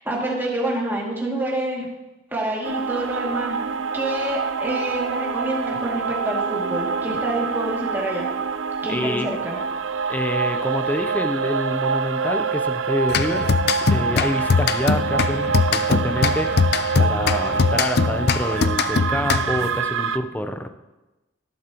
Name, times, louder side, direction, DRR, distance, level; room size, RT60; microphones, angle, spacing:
voice 1, 0.0-1.9 2.3-3.6 3.9-8.3 8.8-9.6, right 1 dB, 10° right, -3 dB, 2.4 m, -27 dB
sound 1, 2.6-20.2, right 5 dB, 90° right, 0.5 m, -26 dB
voice 2, 8.9-9.3 10.1-16.5 17.0-20.7, left 1 dB, 10° left, 7 dB, 0.6 m, -27 dB
sound 2, 13.1-19.8, left 5 dB, 60° left, 0.5 m, -22 dB
12.0 x 12.0 x 3.0 m, 1.1 s
head